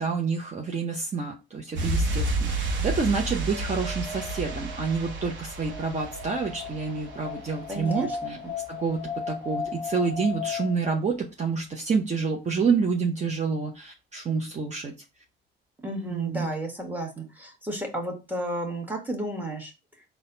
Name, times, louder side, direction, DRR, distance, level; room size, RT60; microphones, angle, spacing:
voice 1, 0.0-8.4 8.7-14.9 16.1-16.5, right 5 dB, 35° right, 1 dB, 0.7 m, -28 dB
sound 1, 1.8-8.3 8.5-8.6, right 2 dB, 65° right, 1.0 m, -31 dB
Wind, 3.2-11.0, left 5 dB, 30° left, 0.9 m, -37 dB
voice 2, 7.7-8.4 15.8-19.7, right 1 dB, 10° right, 1 dB, 1.5 m, -33 dB
4.1 x 2.3 x 3.9 m, 0.27 s
cardioid pair, 90°, 20 cm